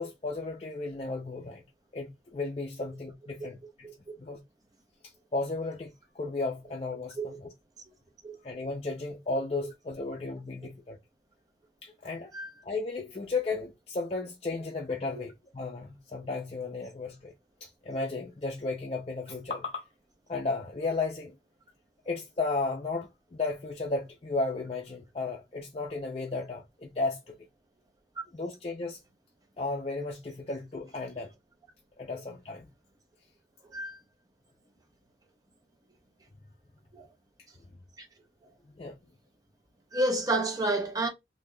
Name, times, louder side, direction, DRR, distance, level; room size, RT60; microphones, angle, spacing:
voice 1, 0.0-1.6 1.9-3.9 4.2-4.4 5.3-7.5 8.4-11.0 11.8-12.3 12.6-17.3 17.6-19.8 20.3-21.3 22.1-27.3 28.3-29.0 29.6-31.3 32.0-32.7 38.7-39.0, left 3 dB, 35° left, 0.4 m, -34 dB
voice 2, 39.9-41.1, right 2 dB, 20° right, 0.7 m, -28 dB
3.4 x 2.6 x 2.2 m
head